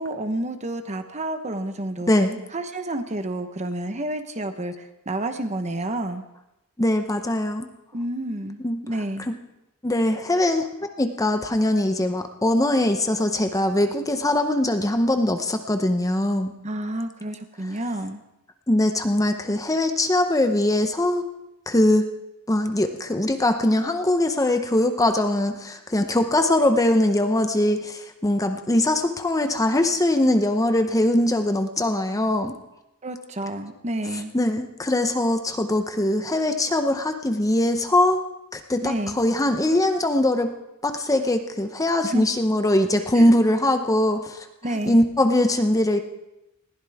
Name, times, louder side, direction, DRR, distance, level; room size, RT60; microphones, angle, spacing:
voice 1, 0.0-2.1 2.5-6.2 7.9-9.2 16.6-18.2 33.0-34.3 38.8-39.2 42.0-42.2 43.1-43.3 44.6-45.0, right 1 dB, 30° right, 8 dB, 1.0 m, -29 dB
voice 2, 2.1-2.4 6.8-7.7 8.6-8.8 9.2-9.3 9.8-16.5 18.7-21.2 21.7-22.1 22.5-32.5 34.1-38.2 38.5-40.5 40.8-44.5 44.9-46.0, left 1 dB, 15° left, 7 dB, 0.7 m, -21 dB
20.5 x 15.0 x 3.5 m, 0.93 s
head